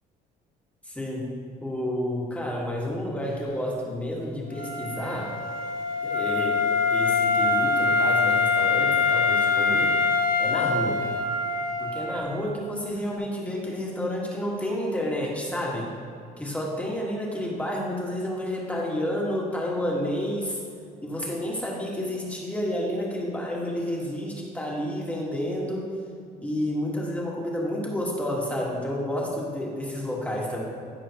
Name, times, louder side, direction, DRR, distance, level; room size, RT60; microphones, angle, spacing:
voice 1, 0.8-1.3 1.6-5.4 6.0-9.9 10.4-11.2 11.8-15.9 16.4-20.6 21.0-25.9 26.4-30.6, left 1 dB, 10° left, -3 dB, 1.5 m, -30 dB
Wind instrument woodwind instrument, 4.5-12.3, left 4 dB, 60° left, 1.0 m, -24 dB
13.0 x 4.9 x 2.9 m, 2.4 s
cardioid pair, 110°, 17 cm